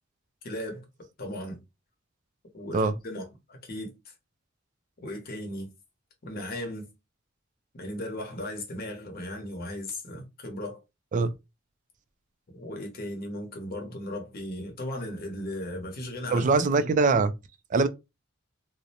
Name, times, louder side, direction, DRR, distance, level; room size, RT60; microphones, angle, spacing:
voice 1, 0.4-0.9 1.2-1.6 2.5-4.1 5.0-5.7 6.2-6.9 7.7-10.8 12.5-16.7, left 1 dB, 50° left, 0.8 m, -36 dB
voice 2, 16.3-17.3 17.7-17.9, right 3 dB, 40° right, 0.3 m, -22 dB
2.5 x 2.0 x 2.7 m
head